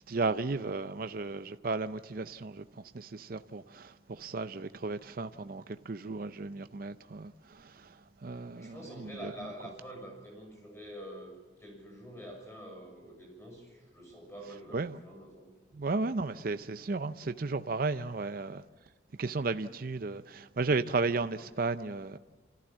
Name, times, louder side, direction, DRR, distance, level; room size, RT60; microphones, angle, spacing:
voice 1, 0.1-9.3 14.7-15.0 15.7-18.6 19.2-22.2, right 3 dB, 50° right, 0.5 m, -34 dB
voice 2, 8.5-11.3 11.6-15.8, equal, 15° left, 6.9 m, -47 dB
28.0 x 14.0 x 7.4 m
head